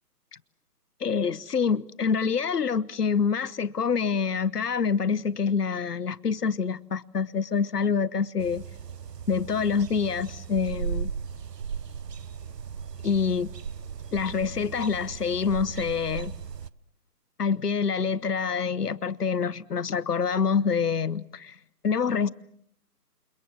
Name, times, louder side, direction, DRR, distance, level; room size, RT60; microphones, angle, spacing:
voice 1, 1.0-8.6 9.3-11.1 13.0-13.5 14.1-16.3 17.4-21.5 21.8-22.3, left 6 dB, 70° left, 1.1 m, -26 dB
sound 1, 8.4-16.7, right 6 dB, 75° right, 1.0 m, -37 dB
29.0 x 27.0 x 6.2 m
figure-of-eight pair, 150°, 48 cm